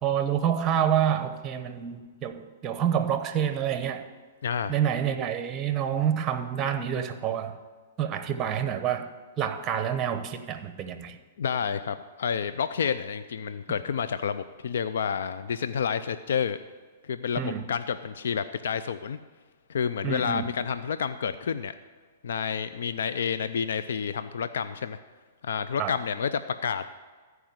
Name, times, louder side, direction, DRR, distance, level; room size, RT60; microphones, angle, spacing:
voice 1, 0.0-4.0 4.7-7.6 8.0-9.1 9.4-11.2 17.4-17.6 20.0-20.4 25.8-25.9, right 9 dB, 25° right, 10 dB, 0.9 m, -27 dB
voice 2, 4.4-4.7 11.4-16.6 17.1-19.2 19.7-21.7 22.2-25.0 25.4-27.0, left 7 dB, 75° left, 12 dB, 0.4 m, -29 dB
14.0 x 4.9 x 7.9 m, 1.4 s
hypercardioid pair, 140°, 0 cm